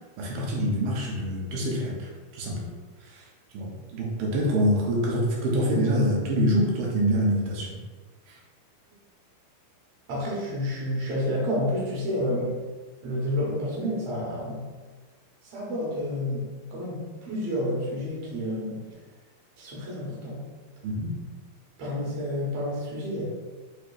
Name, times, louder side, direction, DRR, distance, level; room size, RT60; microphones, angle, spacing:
voice 1, 0.2-2.7 3.0-3.3 3.5-7.8 8.3-8.4 20.8-21.1, equal, 75° right, -3 dB, 2.5 m, -26 dB
voice 2, 10.1-12.6 13.0-14.6 15.4-18.8 19.6-20.4 21.8-23.2, left 1 dB, 60° right, -5 dB, 1.8 m, -30 dB
6.7 x 2.9 x 2.5 m, 1.4 s
omnidirectional pair, 4.4 m